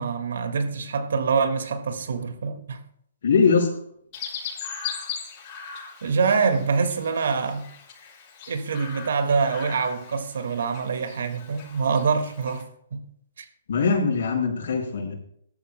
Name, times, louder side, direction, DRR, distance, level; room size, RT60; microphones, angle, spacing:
voice 1, 0.0-2.8 6.0-7.6 8.5-12.6 12.9-13.0 13.4-13.5, right 5 dB, 75° right, 7 dB, 1.9 m, -25 dB
voice 2, 3.2-3.7 13.7-15.1, left 5 dB, 70° left, 1 dB, 4.8 m, -21 dB
Chirp tweet, 4.1-12.6, left 7 dB, 35° left, 6.4 m, -39 dB
20.5 x 13.0 x 2.2 m, 0.69 s
hypercardioid pair, 140°, 0 cm